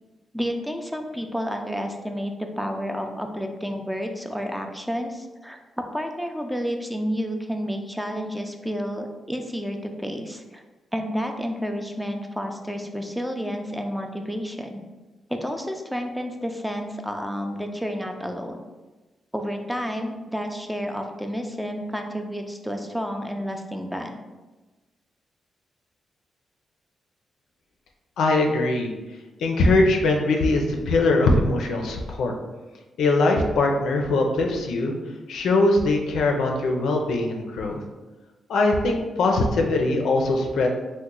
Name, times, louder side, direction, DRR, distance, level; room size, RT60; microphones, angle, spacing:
voice 1, 0.3-5.6 5.9-10.6 10.9-14.8 15.3-18.6 19.3-24.2, equal, ahead, 4 dB, 0.4 m, -30 dB
voice 2, 28.2-28.9 29.4-32.3 33.0-34.9 35.3-37.8 38.5-40.7, left 2 dB, 80° left, 2 dB, 0.4 m, -21 dB
2.9 x 2.1 x 3.7 m, 1.2 s
cardioid pair, 70°, 0 cm